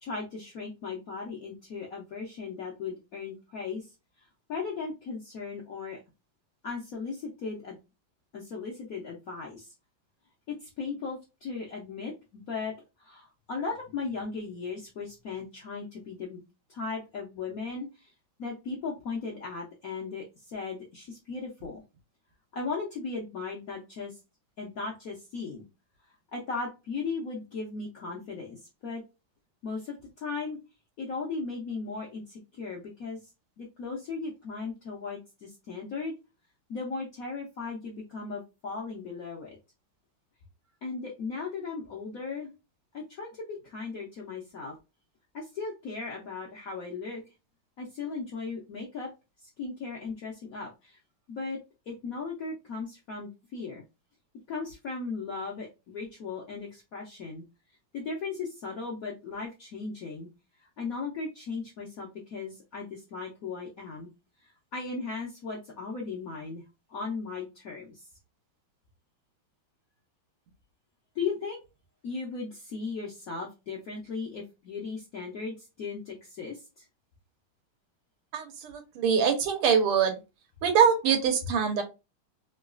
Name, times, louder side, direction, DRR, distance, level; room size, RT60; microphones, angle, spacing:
voice 1, 0.0-3.9 4.5-6.0 6.6-7.8 8.3-9.7 10.5-12.7 13.0-16.4 16.7-18.1 18.4-21.8 22.5-24.2 24.6-25.7 26.1-29.0 29.6-30.6 31.0-33.3 33.6-36.1 36.7-39.6 40.8-42.5 42.9-44.8 45.3-47.2 47.8-49.1 49.4-51.0 51.3-53.8 54.5-57.4 57.9-60.3 60.6-64.1 64.4-66.6 66.9-68.1 71.1-71.6 72.0-76.9, left 4 dB, 70° left, -2 dB, 0.8 m, -37 dB
voice 2, 78.3-80.2 80.6-81.8, right 7 dB, 90° right, 5 dB, 1.8 m, -24 dB
3.9 x 2.3 x 2.4 m, 0.27 s
omnidirectional pair, 2.4 m